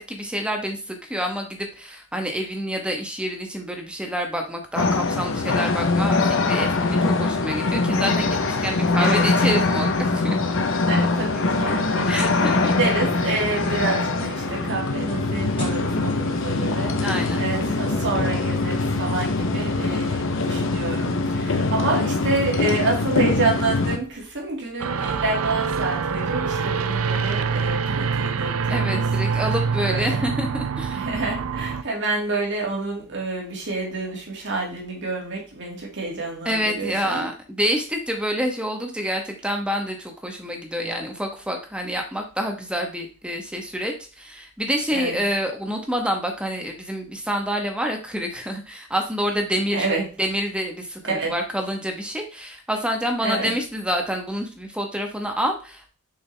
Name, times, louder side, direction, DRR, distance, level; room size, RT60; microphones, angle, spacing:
voice 1, 0.0-10.4 12.1-12.7 17.0-17.5 28.7-31.0 36.4-49.9 50.2-55.9, equal, 5° right, 3 dB, 1.2 m, -27 dB
sound 1, 4.7-24.0, left 3 dB, 65° left, 0.9 m, -23 dB
voice 2, 9.0-9.3 10.9-29.0 29.8-30.2 30.9-37.3 44.9-45.2 49.7-50.1 51.1-51.3 53.2-53.5, right 3 dB, 60° right, -1 dB, 2.4 m, -28 dB
sound 2, 11.4-21.4, equal, 25° left, 2.0 m, -37 dB
sound 3, 24.8-31.8, right 5 dB, 75° right, 0.6 m, -25 dB
7.0 x 5.2 x 3.4 m, 0.34 s
head